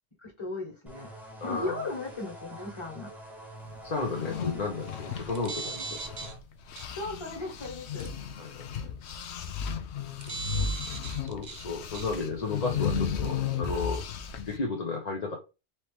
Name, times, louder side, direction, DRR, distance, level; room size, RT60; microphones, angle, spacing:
voice 1, 0.2-1.1 1.4-3.1 6.9-8.1, left 3 dB, 25° left, 1.7 m, -36 dB
sound 1, 0.9-6.4, right 1 dB, ahead, 1.0 m, -46 dB
voice 2, 1.4-1.7 3.8-6.3 8.4-8.7 11.3-14.0 14.4-15.4, left 3 dB, 40° left, 0.8 m, -33 dB
sound 2, 4.0-6.4 6.7-14.6, left 6 dB, 85° left, 0.9 m, -34 dB
sound 3, 5.2-6.3 6.8-6.9 8.0-8.1 10.2-11.6 11.9-12.1, right 4 dB, 50° right, 0.7 m, -38 dB
4.3 x 3.0 x 3.4 m
omnidirectional pair, 1.1 m